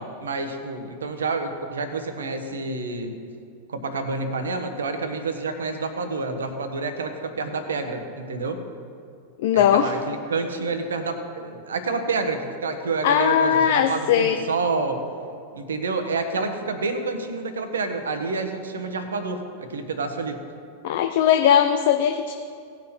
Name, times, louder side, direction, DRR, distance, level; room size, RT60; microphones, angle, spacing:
voice 1, 0.0-3.2 3.7-8.6 9.5-15.0 15.5-20.4, right 3 dB, 70° right, 7 dB, 1.1 m, -28 dB
voice 2, 9.4-9.9 13.0-14.4 20.8-22.3, left 9 dB, 55° left, 7 dB, 0.5 m, -19 dB
17.5 x 6.0 x 4.5 m, 2.4 s
figure-of-eight pair, 90°, 0 cm